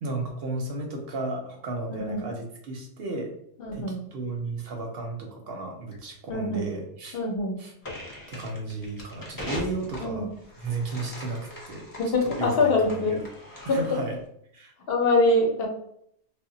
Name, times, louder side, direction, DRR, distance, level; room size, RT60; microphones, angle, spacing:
voice 1, 0.0-3.3 3.7-7.2 7.6-7.7 8.3-10.3 10.6-11.4 11.7-11.8 12.2-13.3 13.6-14.1 14.5-14.7, right 2 dB, 65° right, 2 dB, 0.7 m, -34 dB
voice 2, 3.6-4.0 6.3-6.7 7.1-7.6 10.0-10.3 12.0-13.2 13.7-13.8 14.9-15.7, left 2 dB, 60° left, 0 dB, 0.8 m, -24 dB
sound 1, 7.8-14.2, left 1 dB, 25° left, 0.5 m, -41 dB
2.1 x 2.0 x 3.7 m, 0.69 s
omnidirectional pair, 1.2 m